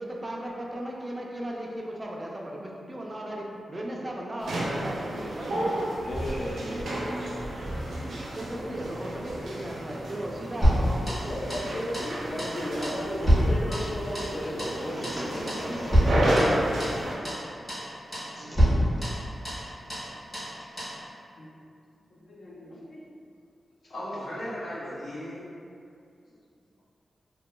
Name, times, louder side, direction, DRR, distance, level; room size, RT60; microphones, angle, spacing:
voice 1, 0.0-5.5 7.9-11.8, right 1 dB, 25° right, -2 dB, 0.3 m, -36 dB
voice 2, 3.2-3.5 6.0-8.1 11.3-15.9 16.8-16.9 21.4-21.5 21.9-23.0 23.8-24.2, equal, 55° left, -4 dB, 0.4 m, -36 dB
sound 1, 4.4-17.2, right 1 dB, 90° right, 0.4 m, -32 dB
sound 2, 10.6-11.7 11.9-12.1 12.4-12.6 12.8-14.3 14.6-14.8 15.0-15.2 15.5-15.7 15.9-17.0 17.2-17.4 17.7-17.9 18.1-18.3 18.6-19.6 19.9-20.1 20.3-20.5 20.8-21.0, equal, 20° left, 1.3 m, -25 dB
sound 3, 13.7-20.4, equal, ahead, 0.7 m, -43 dB
voice 3, 23.9-25.5, left 1 dB, 85° left, -11 dB, 0.8 m, -36 dB
2.8 x 2.1 x 2.2 m, 2.5 s
wide cardioid pair, 105°, 0 cm